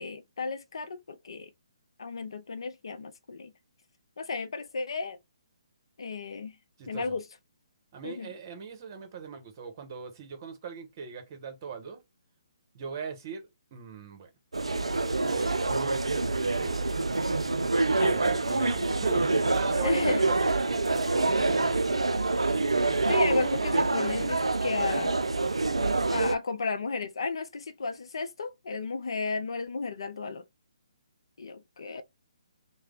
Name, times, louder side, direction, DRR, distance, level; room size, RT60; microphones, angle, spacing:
voice 1, 0.0-1.5 2.0-3.5 4.2-5.2 6.0-6.5 6.9-7.2 8.0-8.3 18.0-18.1 19.8-20.2 23.1-25.1 26.1-30.4 31.4-32.0, left 4 dB, 65° left, 0.5 m, -33 dB
voice 2, 6.8-7.2 7.9-12.0 12.7-14.3 15.1-17.0 18.0-22.1, right 6 dB, 40° right, 1.0 m, -40 dB
sound 1, 14.5-26.4, right 3 dB, 85° right, 0.4 m, -26 dB
3.3 x 2.1 x 3.6 m
figure-of-eight pair, 140°, 3 cm